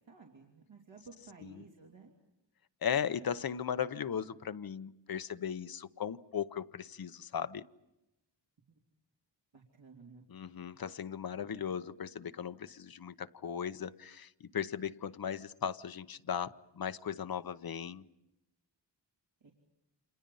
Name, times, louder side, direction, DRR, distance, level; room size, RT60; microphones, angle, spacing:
voice 1, 0.0-2.1 9.5-10.3 11.4-11.7 19.4-19.5, right 4 dB, 80° right, 0 dB, 3.1 m, -55 dB
voice 2, 2.8-7.6 10.3-18.1, left 8 dB, 50° left, 12 dB, 0.8 m, -37 dB
29.5 x 27.5 x 5.5 m, 0.91 s
wide cardioid pair, 165°, 45 cm